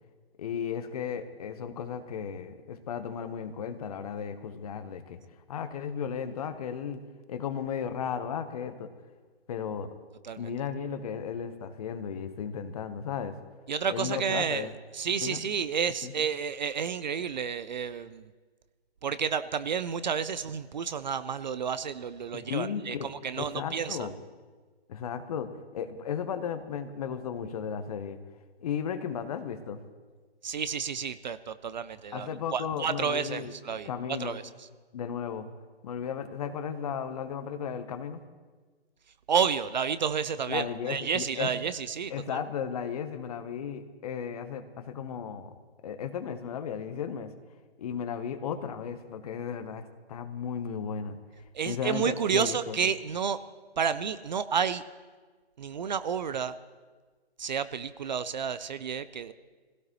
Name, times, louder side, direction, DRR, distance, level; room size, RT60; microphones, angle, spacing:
voice 1, 0.4-5.2 5.5-7.0 7.3-8.9 9.5-9.9 10.4-13.4 13.9-14.7 15.2-15.4 16.0-16.1 22.3-23.1 23.4-24.1 24.9-28.2 28.6-29.8 32.1-34.4 34.9-35.5 35.8-38.2 40.5-41.5 42.1-45.5 45.8-47.3 47.8-51.2 51.7-52.8, left 7 dB, 35° left, 10 dB, 1.1 m, -35 dB
voice 2, 13.7-18.2 19.0-24.1 30.4-34.4 39.3-42.4 51.5-53.4 53.8-54.8 55.6-56.5 57.4-59.3, right 7 dB, 45° right, 14 dB, 0.6 m, -30 dB
23.5 x 16.5 x 3.1 m, 1.4 s
figure-of-eight pair, 135°, 32 cm